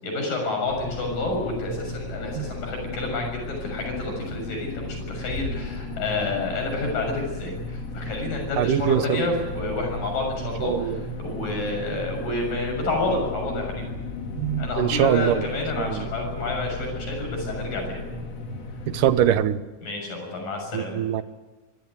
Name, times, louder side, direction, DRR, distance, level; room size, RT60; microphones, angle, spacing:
voice 1, 0.0-13.9 14.6-18.0 19.8-21.0, left 2 dB, 80° left, 2 dB, 8.5 m, -29 dB
sound 1, 0.7-19.3, left 2 dB, 50° left, 3.5 m, -35 dB
Bass drum, 5.3-6.7, left 1 dB, 25° left, 8.3 m, -36 dB
voice 2, 8.6-9.3 10.6-11.0 14.4-15.4 18.9-19.6 20.7-21.2, right 10 dB, 80° right, 12 dB, 2.5 m, -22 dB
25.0 x 16.0 x 9.7 m, 1.2 s
omnidirectional pair, 3.8 m